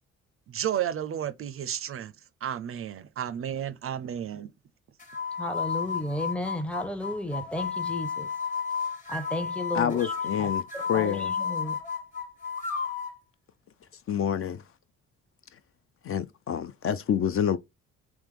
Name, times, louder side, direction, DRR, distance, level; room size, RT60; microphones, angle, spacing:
voice 1, 0.5-2.1 2.4-4.5, right 10 dB, 45° right, 0.4 m, -32 dB
sound 1, 5.0-13.2, left 6 dB, 25° left, 1.2 m, -32 dB
voice 2, 5.4-8.3 9.1-10.1 10.4-10.5 10.9-11.8, left 1 dB, 5° left, 0.6 m, -33 dB
voice 3, 9.7-11.3 14.1-14.6 16.0-17.6, left 9 dB, 45° left, 0.4 m, -27 dB
3.4 x 3.0 x 3.6 m
cardioid pair, 90°, 30 cm